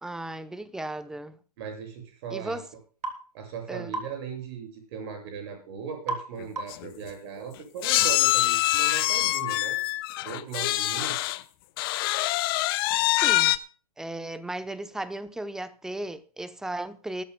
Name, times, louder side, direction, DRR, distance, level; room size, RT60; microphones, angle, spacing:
voice 1, 0.0-1.4 2.3-2.6 3.7-4.0 13.2-13.6 14.0-17.2, right 1 dB, 5° right, 0.7 m, -35 dB
voice 2, 1.6-2.6 3.3-9.8 10.2-11.2, right 7 dB, 40° right, 7.4 m, -38 dB
sound 1, 3.0-3.2 3.9-4.1 6.1-6.3 6.6-6.9, right 2 dB, 85° right, 3.5 m, -32 dB
sound 2, 6.4-6.5 6.7-6.9 7.8-11.4 11.8-13.6, left 17 dB, 35° left, 0.9 m, -24 dB
20.5 x 14.0 x 2.3 m
hypercardioid pair, 135°, 20 cm